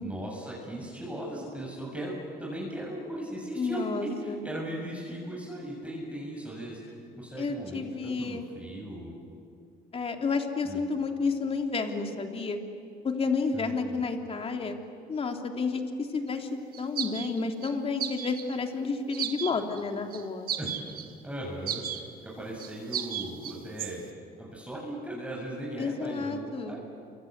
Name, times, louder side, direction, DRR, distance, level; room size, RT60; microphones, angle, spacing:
voice 1, 0.0-9.1 10.6-10.8 13.5-14.0 20.6-20.7 21.2-24.0 24.4-26.8, right 1 dB, 5° right, -3 dB, 7.0 m, -38 dB
voice 2, 3.6-4.4 7.4-8.5 9.9-12.6 13.0-14.8 15.1-16.5 16.8-20.5 25.8-26.8, left 4 dB, 35° left, 4 dB, 3.1 m, -31 dB
sound 1, 16.7-17.7 18.0-18.6 19.1-19.8 20.1-20.2 20.5-21.1 21.7-22.0 22.6-23.9, right 9 dB, 60° right, 1.8 m, -34 dB
28.5 x 25.5 x 8.1 m, 2.4 s
cardioid pair, 110°, 17 cm